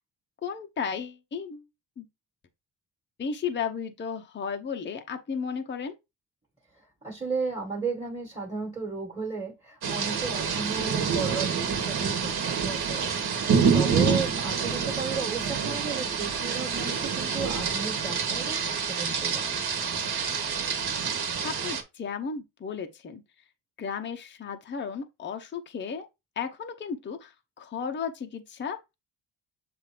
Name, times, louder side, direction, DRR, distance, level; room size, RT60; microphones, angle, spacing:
voice 1, 0.4-1.7 2.0-2.1 3.2-5.9 21.4-23.2 23.8-26.1 26.4-29.0, left 6 dB, 25° left, 0.6 m, -34 dB
voice 2, 6.7-13.1 13.7-19.5, right 4 dB, 10° right, 1.4 m, -34 dB
sound 1, 9.8-21.8, right 6 dB, 50° right, 1.3 m, -27 dB
7.5 x 2.6 x 4.9 m
cardioid pair, 140°, 49 cm